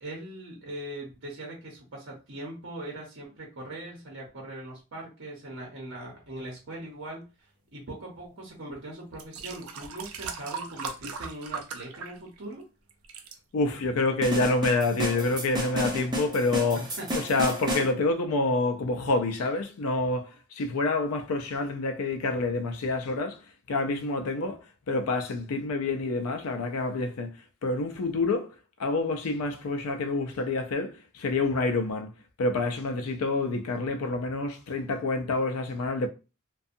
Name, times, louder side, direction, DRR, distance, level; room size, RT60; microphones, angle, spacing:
voice 1, 0.0-7.3 7.7-12.6 16.7-17.1, right 1 dB, 60° right, 0.8 m, -40 dB
sound 1, 8.5-8.6 9.1-12.6 12.9-13.4 14.1-14.2, right 5 dB, 75° right, 0.4 m, -38 dB
voice 2, 13.5-16.8 17.2-23.4 23.7-28.5 28.8-32.1 32.4-36.1, left 3 dB, 80° left, 0.4 m, -27 dB
sound 2, 14.2-17.9, equal, 20° right, 0.8 m, -31 dB
2.6 x 2.3 x 2.5 m
head